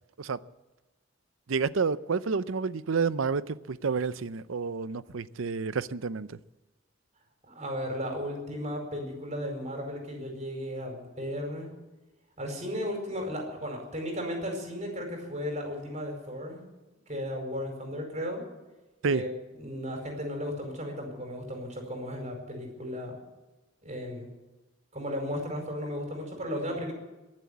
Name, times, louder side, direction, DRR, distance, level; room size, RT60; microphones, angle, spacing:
voice 1, 1.5-6.4 19.0-19.2, right 5 dB, 80° right, 16 dB, 0.6 m, -29 dB
voice 2, 7.4-11.7 12.4-16.6 17.1-18.4 19.1-19.3 19.6-23.2 23.8-24.3 24.9-26.9, equal, 35° right, 2 dB, 4.9 m, -35 dB
22.0 x 7.6 x 8.3 m, 1.1 s
head